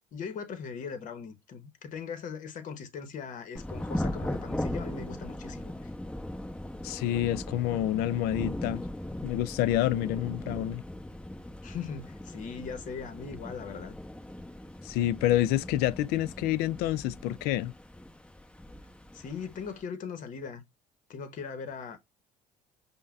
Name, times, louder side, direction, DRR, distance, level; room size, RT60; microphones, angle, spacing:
voice 1, 0.1-5.9 11.6-14.0 19.1-20.6 21.1-22.0, left 6 dB, 50° left, 0.9 m, -39 dB
Thunder / Rain, 3.6-19.8, left 1 dB, 5° left, 0.8 m, -39 dB
voice 2, 6.8-8.8 9.2-10.8 14.8-17.7, left 13 dB, 75° left, 0.4 m, -28 dB
5.5 x 2.2 x 2.4 m
supercardioid pair, 90°, 17 cm